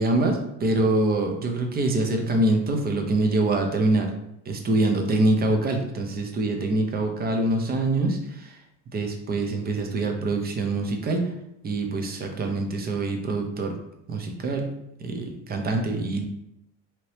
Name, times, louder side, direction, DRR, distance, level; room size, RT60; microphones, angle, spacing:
voice 1, 0.0-4.1 4.5-8.2 8.9-11.3 11.6-13.7 14.1-14.7 15.0-16.3, right 2 dB, 25° right, 4 dB, 0.6 m, -24 dB
2.9 x 2.7 x 3.2 m, 0.83 s
supercardioid pair, 100°, 38 cm